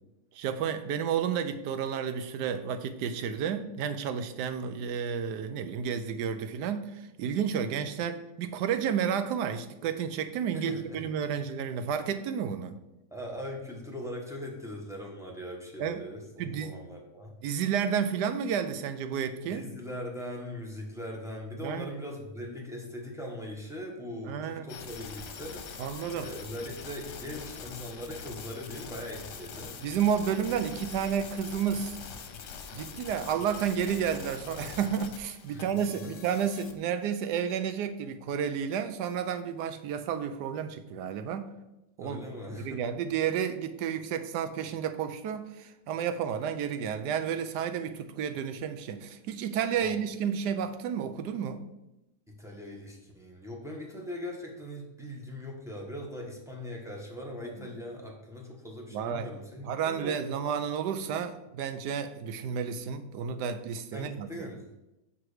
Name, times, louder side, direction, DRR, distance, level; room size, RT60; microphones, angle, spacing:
voice 1, 0.3-12.8 15.8-16.0 16.4-16.7 17.4-19.7 21.6-21.9 24.3-24.7 25.8-26.3 29.8-32.0 32.7-41.5 42.0-42.2 42.5-51.6 57.4-57.7 58.9-59.3 59.6-64.3, right 7 dB, 80° right, 10 dB, 1.2 m, -31 dB
voice 2, 10.5-11.0 13.1-17.3 19.5-25.7 26.2-29.8 35.5-36.2 42.0-42.8 49.8-49.9 52.3-60.3 63.9-64.6, left 1 dB, ahead, -2 dB, 0.8 m, -40 dB
sound 1, 24.7-36.8, left 6 dB, 75° left, 1.3 m, -44 dB
6.1 x 4.7 x 4.8 m, 0.94 s
omnidirectional pair, 1.8 m